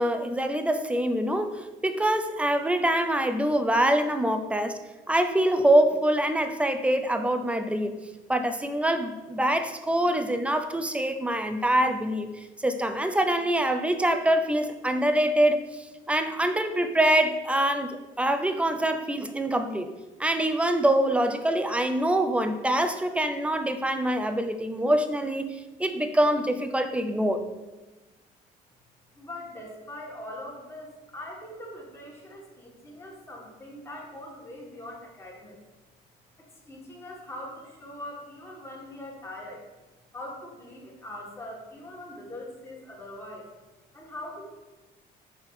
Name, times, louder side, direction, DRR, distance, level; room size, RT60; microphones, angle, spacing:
voice 1, 0.0-4.8 5.1-8.0 8.3-19.9 20.2-27.4, right 1 dB, 5° right, 8 dB, 0.5 m, -25 dB
voice 2, 29.2-35.6 36.4-39.6 40.1-43.5 43.9-44.6, left 1 dB, 15° left, -3 dB, 1.9 m, -42 dB
6.0 x 3.5 x 5.7 m, 1.2 s
cardioid pair, 110°, 17 cm